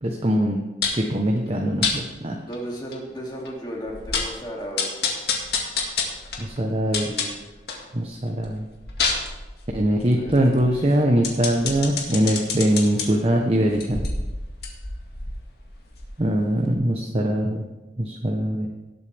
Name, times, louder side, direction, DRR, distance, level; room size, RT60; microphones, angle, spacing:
voice 1, 0.0-0.6 0.9-2.4 6.4-7.1 7.9-8.7 9.7-14.1 16.2-17.7 18.0-18.7, right 1 dB, 35° right, 1 dB, 0.9 m, -22 dB
sound 1, 0.8-1.1 1.8-2.0 2.5-2.6 2.9-3.0 3.5-3.6 3.9-4.4 4.8-7.9 8.3-13.1 13.7-16.4 16.7-16.8, left 5 dB, 65° left, 1.9 m, -28 dB
voice 2, 2.5-5.0 6.8-7.5 10.2-10.9, right 1 dB, 25° left, -2 dB, 2.5 m, -35 dB
18.5 x 8.1 x 3.4 m, 1.1 s
head